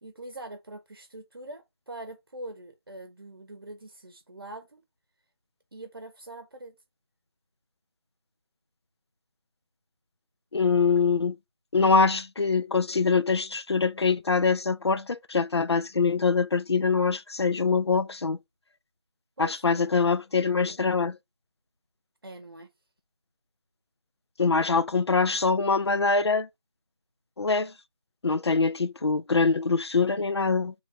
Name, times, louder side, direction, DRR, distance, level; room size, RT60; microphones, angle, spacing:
voice 1, 0.0-4.8 5.7-6.7 19.4-20.0 22.2-22.7, right 1 dB, 60° right, 0.8 m, -43 dB
voice 2, 10.5-11.4 11.7-18.4 19.4-21.2 24.4-26.5 27.4-27.7 28.2-30.7, left 4 dB, 85° left, 0.4 m, -24 dB
5.0 x 3.1 x 2.4 m
figure-of-eight pair, 165°, 13 cm